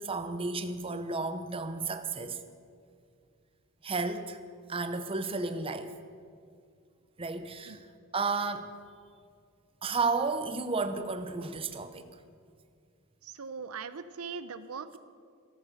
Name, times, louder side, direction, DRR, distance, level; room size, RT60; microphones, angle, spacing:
voice 1, 0.0-2.4 3.8-4.4 4.7-5.9 7.2-7.8 8.1-8.7 9.8-12.1, right 4 dB, 25° right, 9 dB, 0.7 m, -32 dB
voice 2, 13.2-15.0, right 5 dB, 75° right, 13 dB, 0.6 m, -40 dB
13.5 x 13.0 x 6.4 m, 2.2 s
head